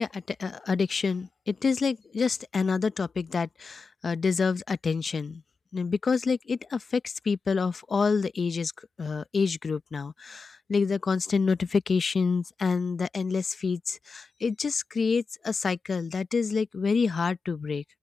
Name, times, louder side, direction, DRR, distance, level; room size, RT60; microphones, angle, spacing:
voice 1, 0.0-5.4 5.7-17.8, left 5 dB, 40° left, 0.7 m, -27 dB
open air
cardioid pair, 90°, 0 cm